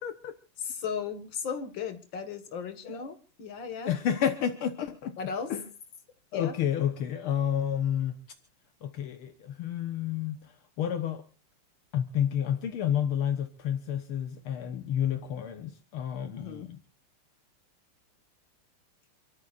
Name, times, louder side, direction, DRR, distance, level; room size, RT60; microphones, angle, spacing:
voice 1, 0.0-0.3 2.8-3.0 3.8-5.2 5.5-5.6 6.3-8.2 8.8-10.5 10.8-11.2 11.9-16.8, left 9 dB, 75° left, 2.0 m, -30 dB
voice 2, 0.6-3.9 5.2-5.5 6.3-6.6 16.4-16.7, left 6 dB, 60° left, 2.5 m, -36 dB
28.5 x 13.5 x 2.5 m
omnidirectional pair, 2.4 m